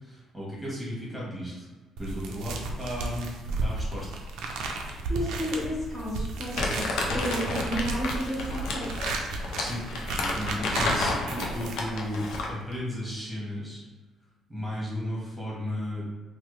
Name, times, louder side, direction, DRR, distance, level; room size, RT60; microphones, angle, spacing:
voice 1, 0.0-1.7 2.0-3.3 3.6-4.1 9.3-9.8 10.1-13.8 14.5-16.1, equal, ahead, -6 dB, 1.2 m, -34 dB
sound 1, 2.0-12.1, right 3 dB, 85° right, 0.4 m, -34 dB
voice 2, 5.1-9.1 10.5-10.6, equal, 35° left, -12 dB, 1.3 m, -32 dB
Crumpling crinkling, 6.5-12.6, left 2 dB, 80° left, 0.5 m, -31 dB
3.2 x 2.2 x 3.1 m, 1.2 s
cardioid pair, 135°, 0 cm